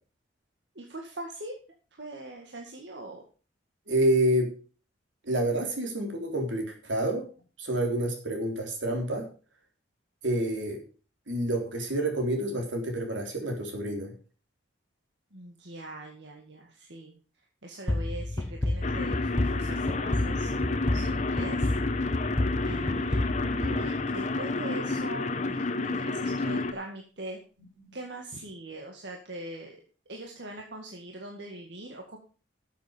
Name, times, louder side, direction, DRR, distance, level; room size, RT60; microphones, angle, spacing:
voice 1, 0.8-1.5 1.9-3.2 15.3-17.2 17.6-21.7 22.6-27.4 27.9-29.8 30.1-32.2, right 1 dB, 65° right, 1 dB, 1.9 m, -42 dB
voice 2, 3.9-4.5 5.3-7.3 7.6-9.2 10.2-10.8 11.3-14.1 27.8-27.9, right 1 dB, 85° right, 3 dB, 3.7 m, -28 dB
sound 1, 17.9-24.5, left 1 dB, 15° left, 0.4 m, -30 dB
sound 2, 18.8-26.7, left 3 dB, 40° left, 0.9 m, -30 dB
13.0 x 7.6 x 5.1 m, 0.37 s
head